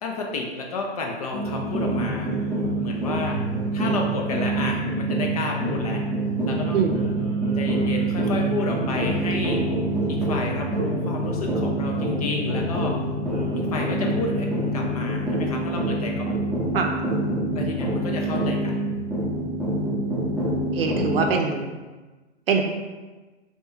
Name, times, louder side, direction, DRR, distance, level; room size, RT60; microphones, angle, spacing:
voice 1, 0.0-2.3 2.8-3.4 3.7-6.1 6.4-6.8 7.6-9.6 10.1-13.0 13.6-16.4 17.5-18.8, left 3 dB, 35° left, 1 dB, 0.4 m, -31 dB
sound 1, 1.3-21.2, right 1 dB, ahead, 0.7 m, -26 dB
sound 2, 3.1-15.0, right 7 dB, 50° left, 0.8 m, -36 dB
voice 2, 20.7-21.7 22.5-22.6, right 5 dB, 55° right, 3 dB, 0.6 m, -23 dB
3.3 x 2.7 x 3.3 m, 1.2 s
hypercardioid pair, 130°, 35 cm